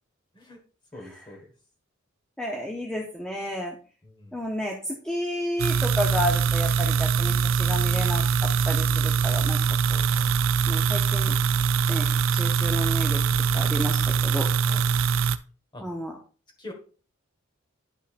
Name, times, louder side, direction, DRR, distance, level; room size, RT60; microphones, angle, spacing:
voice 1, 0.9-1.5 4.0-4.4 10.0-10.4 13.3-13.7 14.6-14.9 15.7-15.8 16.6-16.7, left 1 dB, 20° left, 2 dB, 1.5 m, -43 dB
voice 2, 2.4-3.8 4.3-8.2 8.7-9.6 9.9-10.0 10.7-11.3 11.9-13.2 13.5-14.5 15.8-16.2, equal, 5° left, 0 dB, 0.7 m, -31 dB
sound 1, 5.6-15.4, right 6 dB, 70° right, 0.4 m, -23 dB
10.0 x 5.4 x 2.5 m, 0.39 s
head